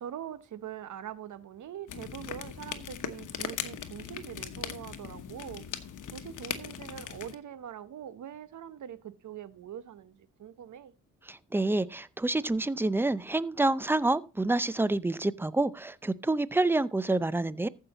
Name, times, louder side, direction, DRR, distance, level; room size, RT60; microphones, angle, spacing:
voice 1, 0.0-10.9, right 10 dB, 70° right, 0.9 m, -43 dB
sound 1, 1.9-7.3, left 8 dB, 75° left, 1.1 m, -39 dB
voice 2, 11.3-17.7, right 2 dB, 5° right, 0.5 m, -28 dB
14.5 x 5.6 x 4.1 m
cardioid pair, 65°, 32 cm